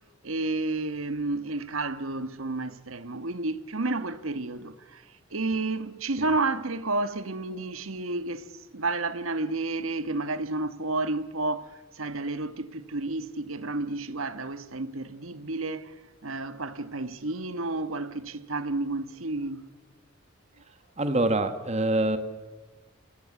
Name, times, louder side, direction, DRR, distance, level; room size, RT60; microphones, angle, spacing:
voice 1, 0.2-15.9 16.2-19.7, right 2 dB, 80° right, 1.4 m, -31 dB
voice 2, 21.0-22.2, right 2 dB, 30° right, 1.4 m, -25 dB
29.0 x 16.5 x 8.6 m
head